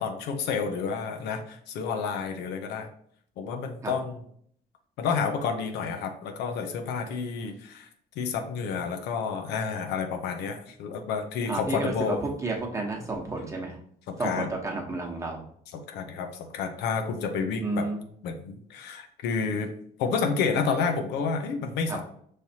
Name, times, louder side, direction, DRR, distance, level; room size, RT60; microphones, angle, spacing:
voice 1, 0.0-2.9 3.4-4.2 5.0-7.9 8.2-12.2 14.1-14.5 15.7-17.9 18.2-19.7 20.0-22.0, left 5 dB, 85° left, 5 dB, 0.7 m, -30 dB
voice 2, 11.5-13.8 14.2-15.4 17.6-18.0 21.9-22.0, right 2 dB, 15° right, 0 dB, 1.0 m, -31 dB
5.6 x 3.2 x 2.8 m, 0.64 s
cardioid pair, 110°, 17 cm